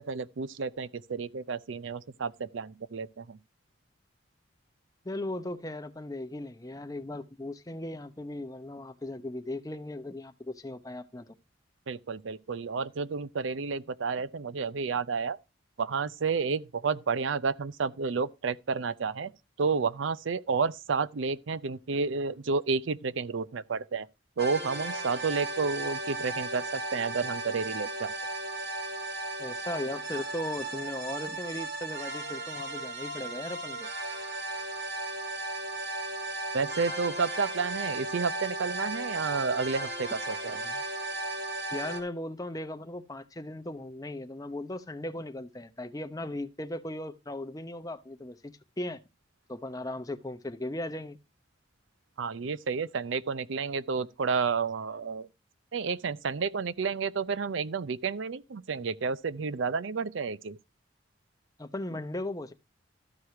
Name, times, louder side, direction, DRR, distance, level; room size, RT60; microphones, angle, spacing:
voice 1, 0.0-3.4 11.9-15.4 15.8-19.3 19.6-24.1 24.4-28.1 36.5-40.8 52.2-55.3 55.7-60.6, right 5 dB, 70° right, 0.5 m, -31 dB
voice 2, 5.0-11.3 29.4-33.9 41.7-49.0 49.5-51.2 61.6-62.5, left 1 dB, 20° left, 0.7 m, -37 dB
sound 1, 24.4-42.0, right 2 dB, 50° right, 2.7 m, -35 dB
13.0 x 4.8 x 5.7 m
head